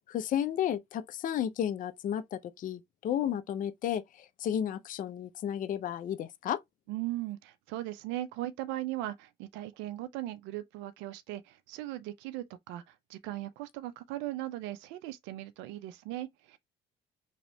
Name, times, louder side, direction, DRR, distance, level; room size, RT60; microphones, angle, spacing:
voice 1, 0.1-6.6, left 10 dB, 45° left, 0.5 m, -33 dB
voice 2, 6.9-16.6, right 15 dB, 85° right, 0.4 m, -38 dB
3.0 x 2.8 x 3.0 m
cardioid pair, 95°, 18 cm